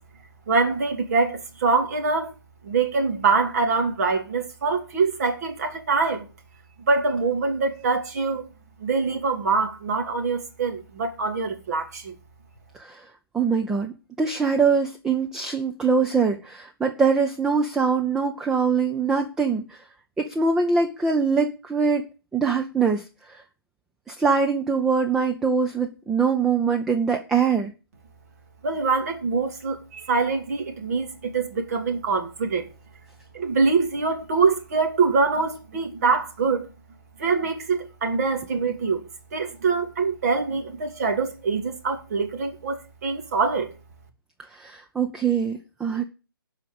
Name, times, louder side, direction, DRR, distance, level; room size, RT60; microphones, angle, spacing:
voice 1, 0.5-2.3 2.6-6.3 6.8-8.4 8.8-12.1 28.6-32.7 33.3-36.6 37.2-39.0 39.3-43.7, right 4 dB, 45° right, 2.8 m, -24 dB
voice 2, 13.3-19.8 20.2-22.0 22.3-23.4 24.1-27.7 44.5-46.0, right 5 dB, 5° right, 0.5 m, -23 dB
12.0 x 5.0 x 8.8 m
figure-of-eight pair, 150°, 12 cm